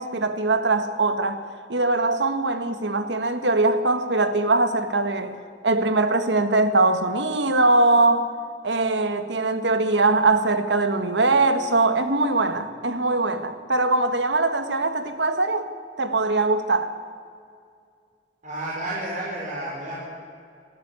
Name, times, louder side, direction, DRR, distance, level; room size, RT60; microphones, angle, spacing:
voice 1, 0.0-1.4 1.7-5.4 5.6-8.3 8.6-15.7 16.0-17.0, right 2 dB, 80° right, 1.7 m, -21 dB
voice 2, 18.4-20.1, right 1 dB, 45° right, 5.1 m, -31 dB
26.0 x 13.5 x 9.7 m
head